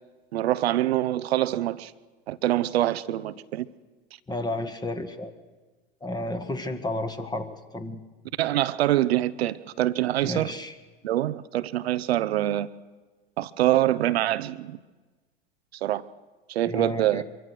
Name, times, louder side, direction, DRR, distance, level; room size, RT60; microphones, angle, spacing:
voice 1, 0.3-1.9 2.3-3.7 8.4-10.5 11.0-12.7 13.4-14.8 15.8-16.0 16.5-17.2, right 14 dB, 75° right, 0.8 m, -25 dB
voice 2, 4.3-5.3 6.0-8.0 10.2-10.8 16.6-17.2, left 2 dB, 15° left, 1.6 m, -32 dB
24.0 x 23.5 x 6.3 m
hypercardioid pair, 90°, 31 cm